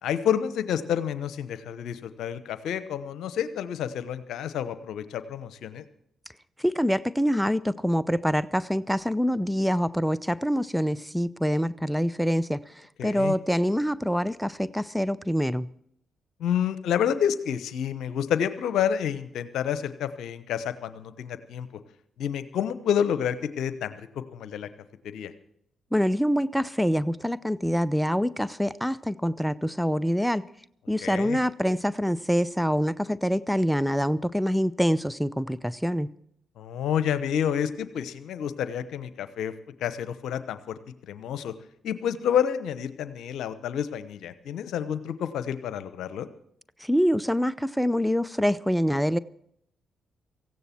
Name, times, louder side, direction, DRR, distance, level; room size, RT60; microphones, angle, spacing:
voice 1, 0.0-5.8 13.0-13.3 16.4-21.7 22.2-24.7 25.0-25.3 31.0-31.4 36.6-39.5 39.8-40.8 41.1-41.5 41.8-46.3, left 9 dB, 70° left, 13 dB, 1.0 m, -29 dB
voice 2, 6.6-15.7 25.9-30.5 30.9-36.1 46.8-49.2, equal, ahead, 17 dB, 0.7 m, -25 dB
17.5 x 15.5 x 4.4 m, 0.70 s
hypercardioid pair, 45°, 0 cm